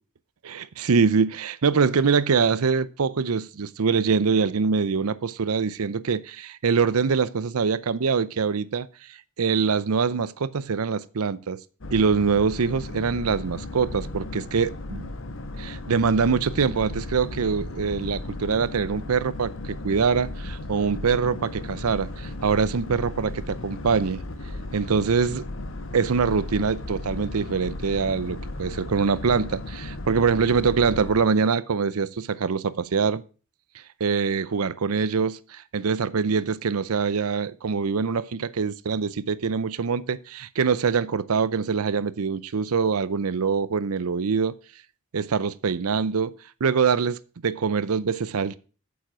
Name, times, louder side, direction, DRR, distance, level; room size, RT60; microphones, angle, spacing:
voice 1, 0.4-8.9 9.4-11.6 11.9-15.1 15.6-24.2 24.7-25.4 25.9-33.2 33.7-44.5 45.1-46.3 46.6-47.2 47.4-48.6, right 5 dB, 85° right, 0.6 m, -24 dB
Boat Water vehicle, 11.8-31.2, left 2 dB, 60° left, 1.3 m, -35 dB
9.1 x 7.1 x 6.0 m
head